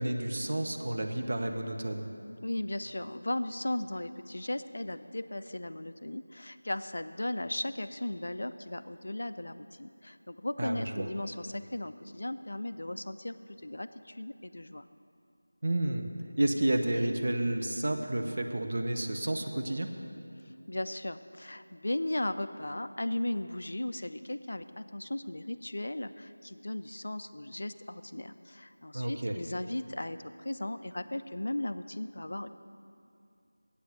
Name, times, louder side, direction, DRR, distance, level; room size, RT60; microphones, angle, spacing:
voice 1, 0.0-2.1 10.6-11.1 15.6-16.1 16.4-19.9 28.9-29.3, right 1 dB, 40° right, 4 dB, 0.7 m, -30 dB
voice 2, 2.4-14.9 20.7-32.5, left 1 dB, 55° left, 11 dB, 0.3 m, -36 dB
8.3 x 7.9 x 6.5 m, 2.5 s
figure-of-eight pair, 170°, 0 cm